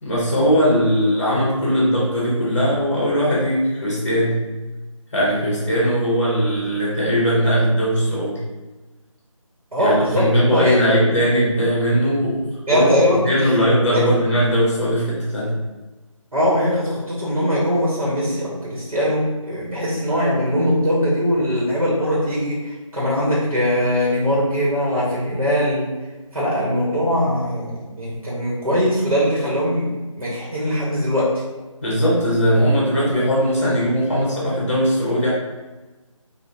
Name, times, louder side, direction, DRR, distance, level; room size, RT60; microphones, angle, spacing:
voice 1, 0.0-4.4 5.1-8.4 9.8-12.9 13.2-15.5 31.8-35.3, equal, 25° left, -6 dB, 0.8 m, -19 dB
voice 2, 9.7-11.0 12.7-13.4 13.9-14.1 16.3-25.9 26.3-31.4, equal, 85° right, -6 dB, 1.2 m, -21 dB
3.5 x 2.4 x 2.7 m, 1.2 s
figure-of-eight pair, 165°, 18 cm